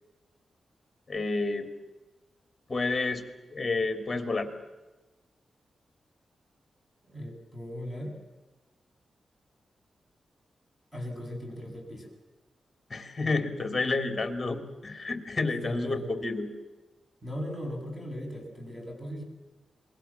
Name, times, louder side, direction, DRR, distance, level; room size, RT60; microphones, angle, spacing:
voice 1, 1.1-1.7 2.7-3.2 3.5-4.5 12.9-16.5, left 3 dB, 25° left, 8 dB, 3.1 m, -30 dB
voice 2, 7.0-8.2 10.9-12.1 15.6-16.1 17.2-19.2, equal, 5° right, 1 dB, 7.9 m, -38 dB
28.5 x 21.5 x 7.4 m, 1.1 s
wide cardioid pair, 110°, 0 cm